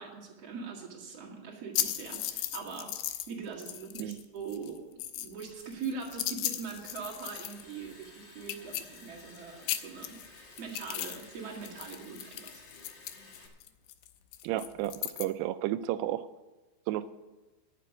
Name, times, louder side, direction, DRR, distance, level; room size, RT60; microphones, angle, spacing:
voice 1, 0.0-3.0 3.3-4.8 5.2-12.6, right 5 dB, 45° right, -3 dB, 2.5 m, -42 dB
sound 1, 1.7-3.3 3.6-4.2 4.5-7.7 8.0-8.1 8.4-9.4 9.6-11.3 11.5-15.3, left 13 dB, 80° left, 2.3 m, -36 dB
Liquid, 5.4-13.5, left 3 dB, 65° left, 1.1 m, -55 dB
voice 2, 14.4-16.3 16.9-17.1, right 13 dB, 85° right, 12 dB, 2.5 m, -32 dB
11.0 x 7.5 x 8.6 m, 1.1 s
omnidirectional pair, 4.9 m